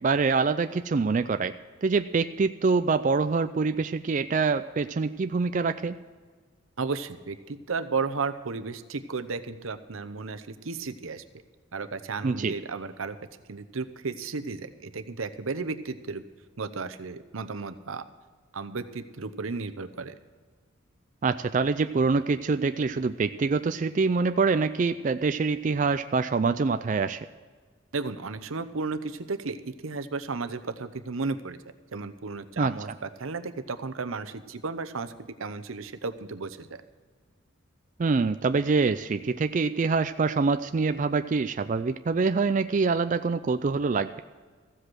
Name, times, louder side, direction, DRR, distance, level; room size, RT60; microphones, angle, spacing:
voice 1, 0.0-1.5 1.8-6.0 12.2-12.5 21.2-27.3 32.6-32.7 38.0-44.2, right 4 dB, 40° right, 10 dB, 0.3 m, -25 dB
voice 2, 6.8-11.2 11.7-13.1 13.5-16.2 16.6-18.0 18.5-20.1 27.9-31.6 31.9-35.1 35.4-36.8, right 4 dB, 85° right, 9 dB, 0.8 m, -34 dB
15.0 x 7.8 x 6.2 m, 1.5 s
head